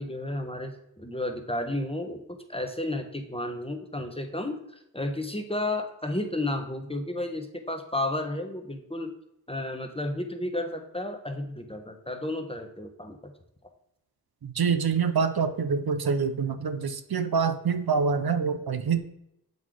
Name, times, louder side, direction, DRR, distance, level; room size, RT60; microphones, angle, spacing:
voice 1, 0.0-4.6 4.9-9.1 9.5-13.3, left 1 dB, 15° left, 5 dB, 1.0 m, -32 dB
voice 2, 14.4-19.0, right 5 dB, 70° right, 10 dB, 0.6 m, -26 dB
7.2 x 4.0 x 4.8 m, 0.79 s
wide cardioid pair, 45°, 38 cm